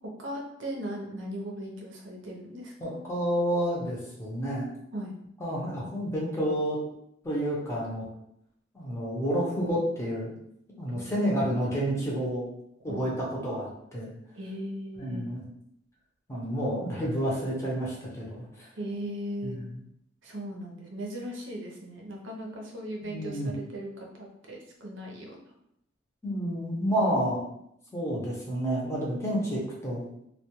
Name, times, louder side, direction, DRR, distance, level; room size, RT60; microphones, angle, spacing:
voice 1, 0.0-3.0 4.9-5.1 10.8-11.3 12.9-13.1 14.3-15.2 18.8-19.6 20.2-25.4, equal, 80° right, -1 dB, 0.6 m, -38 dB
voice 2, 2.8-4.7 5.4-6.8 7.2-8.1 8.7-10.3 10.8-12.4 12.8-14.1 15.0-15.4 16.3-18.7 19.4-19.6 23.0-23.5 26.2-27.4 27.9-30.0, equal, 15° left, -5 dB, 0.7 m, -29 dB
2.2 x 2.2 x 2.9 m, 0.75 s
head